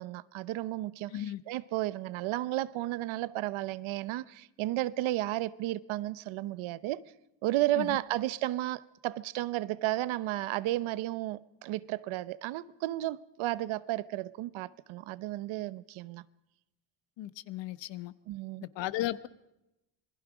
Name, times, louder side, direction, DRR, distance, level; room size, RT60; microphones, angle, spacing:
voice 1, 0.0-7.0 7.4-16.2 18.3-18.6, right 16 dB, 85° right, 0.9 m, -33 dB
voice 2, 17.2-18.1 18.8-19.3, left 14 dB, 70° left, 1.1 m, -35 dB
27.0 x 21.0 x 5.0 m
cardioid pair, 160°, 46 cm